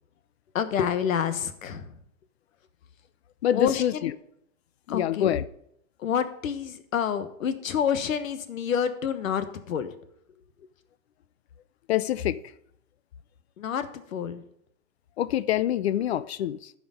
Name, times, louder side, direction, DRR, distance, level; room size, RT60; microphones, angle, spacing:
voice 1, 0.5-2.0 3.5-4.1 4.9-5.3 6.0-9.9 10.6-10.7 13.6-14.4, left 8 dB, 80° left, 1.3 m, -28 dB
voice 2, 3.4-4.1 4.9-5.4 11.9-12.4 15.2-16.7, left 11 dB, 50° left, 0.5 m, -26 dB
12.5 x 5.1 x 5.4 m
hypercardioid pair, 160°, 40 cm